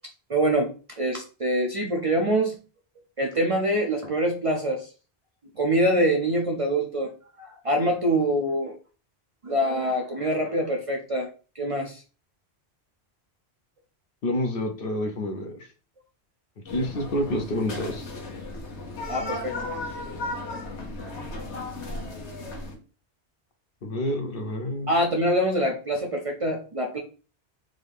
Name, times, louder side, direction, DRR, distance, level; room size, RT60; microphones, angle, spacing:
voice 1, 0.3-2.6 3.2-4.9 5.6-7.1 7.4-8.8 9.4-11.3 11.5-12.0 19.1-19.7 20.4-20.5 24.9-27.0, right 1 dB, 40° right, 1 dB, 0.5 m, -25 dB
voice 2, 14.2-15.6 16.7-18.0 23.8-24.9, left 1 dB, 60° left, 4 dB, 0.9 m, -28 dB
sound 1, 16.7-22.7, left 2 dB, 85° left, 1.2 m, -35 dB
3.8 x 2.6 x 3.4 m, 0.36 s
omnidirectional pair, 1.1 m